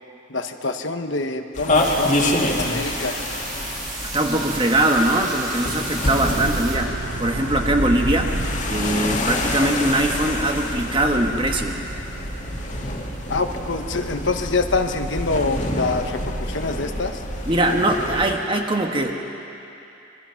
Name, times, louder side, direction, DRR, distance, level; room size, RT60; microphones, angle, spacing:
voice 1, 0.3-3.2 13.3-17.2, left 3 dB, 65° left, 6 dB, 1.2 m, -25 dB
sound 1, 1.5-18.3, left 1 dB, 35° left, 2.2 m, -28 dB
sound 2, 1.7-6.8, right 3 dB, 45° right, 5.2 m, -34 dB
voice 2, 4.0-8.3 8.7-11.8 17.5-19.1, right 1 dB, 25° right, 2 dB, 1.6 m, -21 dB
sound 3, 6.2-17.4, right 2 dB, 75° right, 1.1 m, -32 dB
26.0 x 23.0 x 5.9 m, 2.9 s
head